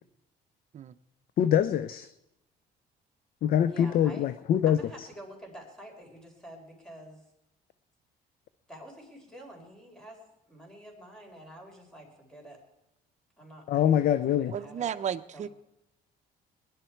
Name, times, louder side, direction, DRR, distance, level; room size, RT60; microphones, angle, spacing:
voice 1, 1.4-2.1 3.4-5.1 13.7-14.5, left 10 dB, 60° left, 13 dB, 0.6 m, -24 dB
voice 2, 3.6-4.2 4.7-7.2 8.7-12.6 13.4-14.9 15.3-15.5, right 1 dB, 5° left, 1 dB, 4.6 m, -48 dB
voice 3, 14.5-15.5, right 9 dB, 45° right, 10 dB, 0.8 m, -33 dB
21.0 x 11.0 x 4.6 m, 0.87 s
cardioid pair, 110°, 17 cm